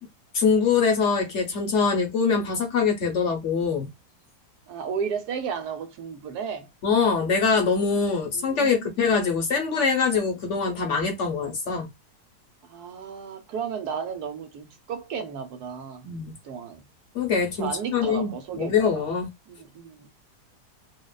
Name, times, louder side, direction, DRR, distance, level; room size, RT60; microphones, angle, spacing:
voice 1, 0.3-3.9 6.8-11.9 16.0-16.3 17.1-19.3, left 5 dB, 55° left, 0.9 m, -23 dB
voice 2, 4.7-6.7 8.3-9.0 12.6-16.1 16.4-16.9 17.6-18.9 19.5-20.1, right 6 dB, 70° right, 1.1 m, -34 dB
2.8 x 2.1 x 2.2 m
omnidirectional pair, 1.8 m